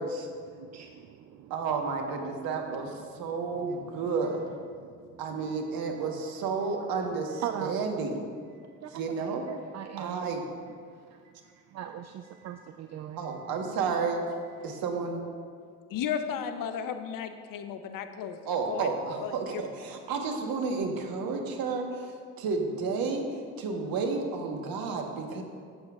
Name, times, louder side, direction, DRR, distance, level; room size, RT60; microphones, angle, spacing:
voice 1, 0.5-1.5 2.7-2.8 4.8-5.2 5.4-5.6 7.4-7.7 8.6-8.9 9.5-10.3 11.4-13.2 14.6-14.8, right 10 dB, 40° right, 7 dB, 0.5 m, -40 dB
voice 2, 1.5-2.9 3.2-4.4 5.2-8.2 8.9-9.4 10.0-10.4 13.2-14.2 14.6-15.2 18.5-22.1 22.4-25.4, right 4 dB, 60° right, 3 dB, 1.3 m, -31 dB
voice 3, 15.9-18.9 19.2-19.6, left 8 dB, 55° left, 9 dB, 0.7 m, -34 dB
12.0 x 7.8 x 2.4 m, 2.1 s
hypercardioid pair, 55°, 41 cm